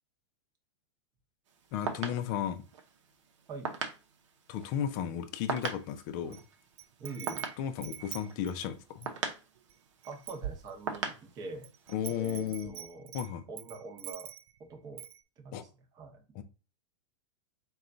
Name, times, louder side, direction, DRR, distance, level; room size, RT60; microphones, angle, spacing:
sound 1, 1.5-12.1, right 6 dB, 80° right, 0.7 m, -41 dB
voice 1, 1.7-2.6 4.5-6.4 7.6-9.1 11.9-12.7 13.1-13.4 15.5-15.6 16.3-16.4, left 9 dB, 45° left, 0.5 m, -34 dB
Wind chime, 5.6-6.4 6.8-9.2 9.7-9.8 10.0-11.1 11.6-14.6 15.0-15.2, right 11 dB, 50° right, 0.4 m, -44 dB
voice 2, 7.0-7.5 10.1-11.7 12.1-13.1 13.5-14.3 14.7-15.1 15.4-15.7 15.9-16.2, right 3 dB, 25° right, 0.8 m, -44 dB
3.8 x 2.3 x 3.8 m
supercardioid pair, 140°, 15 cm